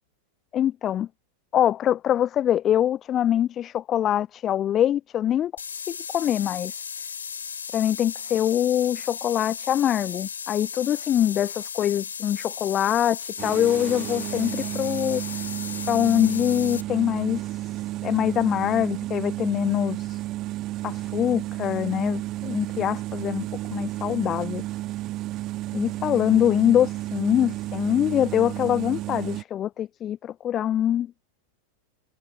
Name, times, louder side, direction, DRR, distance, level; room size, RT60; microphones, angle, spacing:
voice 1, 0.5-1.1 1.5-6.7 7.7-15.2 15.9-17.6 18.0-20.2 20.8-24.6 25.7-31.1, left 11 dB, 30° left, 0.4 m, -24 dB
sound 1, 5.6-16.8, left 7 dB, 70° left, 6.2 m, -36 dB
sound 2, 13.4-29.4, right 16 dB, 35° right, 1.7 m, -32 dB
figure-of-eight pair, 90°, 0 cm